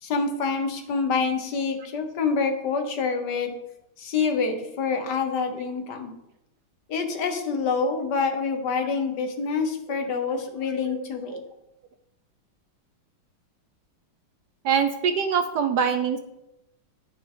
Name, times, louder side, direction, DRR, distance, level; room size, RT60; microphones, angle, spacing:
voice 1, 0.0-3.5 4.0-6.1 6.9-11.4, left 5 dB, 60° left, 6 dB, 1.7 m, -26 dB
voice 2, 14.6-16.2, right 7 dB, 65° right, 8 dB, 1.1 m, -24 dB
10.0 x 9.7 x 3.8 m, 0.88 s
omnidirectional pair, 2.2 m